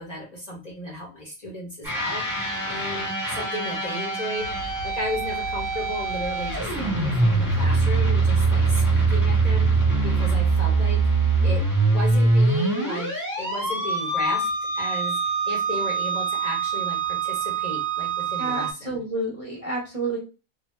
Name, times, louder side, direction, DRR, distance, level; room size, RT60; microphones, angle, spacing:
voice 1, 0.0-4.5 4.8-11.0 11.4-14.5 14.7-19.0, equal, 40° left, -3 dB, 0.7 m, -34 dB
sound 1, 1.8-18.7, right 3 dB, 15° right, 1.1 m, -23 dB
sound 2, 4.4-11.7, left 2 dB, 75° left, 1.1 m, -37 dB
voice 2, 18.4-20.2, right 2 dB, 40° right, -4 dB, 0.5 m, -29 dB
2.4 x 2.1 x 3.0 m, 0.30 s
omnidirectional pair, 1.4 m